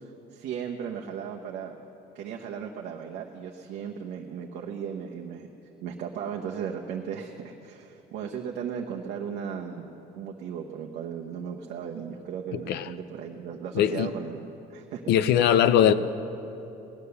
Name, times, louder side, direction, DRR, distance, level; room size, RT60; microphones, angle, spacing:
voice 1, 0.0-1.8 2.1-5.5 5.8-15.0 15.8-15.9, right 7 dB, 80° right, 0 dB, 0.9 m, -36 dB
voice 2, 12.5-12.9 13.7-14.1 15.1-15.9, left 10 dB, 75° left, 13 dB, 0.6 m, -21 dB
18.0 x 9.6 x 6.8 m, 3.0 s
cardioid pair, 110°, 17 cm